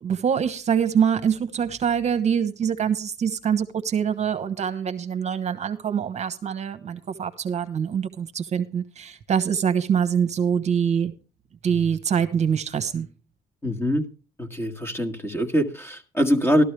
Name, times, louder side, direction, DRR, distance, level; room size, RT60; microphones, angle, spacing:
voice 1, 0.0-11.1 11.6-13.1, right 7 dB, 40° right, 1.1 m, -24 dB
voice 2, 13.6-14.1 14.4-16.6, equal, 15° left, 1.6 m, -23 dB
13.5 x 12.5 x 3.3 m
cardioid pair, 110°, 17 cm